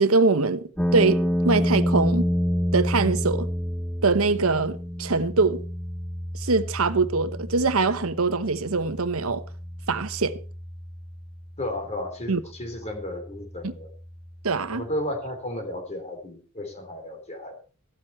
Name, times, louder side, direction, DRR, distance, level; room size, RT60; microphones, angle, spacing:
voice 1, 0.0-2.3 2.7-3.5 4.0-5.6 6.3-9.4 9.9-10.4 12.3-12.4 13.6-13.7 14.4-14.9, right 3 dB, 75° right, 1.0 m, -23 dB
sound 1, 0.8-14.8, equal, 5° left, 0.7 m, -30 dB
voice 2, 11.6-13.9 14.7-17.6, left 1 dB, 30° left, 3.5 m, -33 dB
15.0 x 12.5 x 4.3 m
head